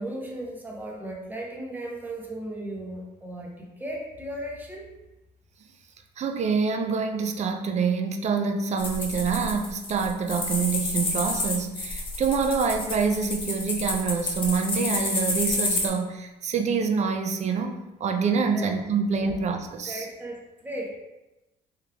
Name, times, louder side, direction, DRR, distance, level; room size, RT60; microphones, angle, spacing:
voice 1, 0.0-4.9 18.5-18.7 19.2-19.3 19.8-21.0, right 1 dB, 10° right, -2 dB, 1.0 m, -36 dB
voice 2, 6.2-20.1, right 5 dB, 40° right, 5 dB, 0.5 m, -26 dB
sound 1, 8.8-15.9, left 2 dB, 30° left, 0.9 m, -29 dB
3.7 x 3.0 x 3.4 m, 0.99 s
cardioid pair, 110°, 17 cm